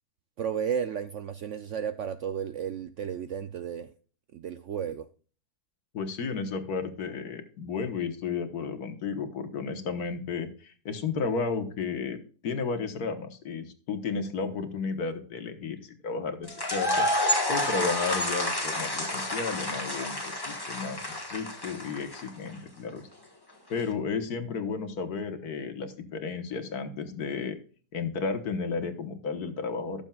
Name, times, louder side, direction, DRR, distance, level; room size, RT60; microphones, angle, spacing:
voice 1, 0.4-3.9 4.3-5.1, right 8 dB, 70° right, 0.7 m, -33 dB
voice 2, 5.9-12.2 12.4-17.1 17.5-20.2 20.4-23.1 23.7-27.6 27.9-30.0, left 5 dB, 70° left, 1.7 m, -33 dB
sound 1, 16.5-22.5, left 1 dB, 15° left, 1.3 m, -29 dB
17.5 x 7.1 x 2.3 m
omnidirectional pair, 1.7 m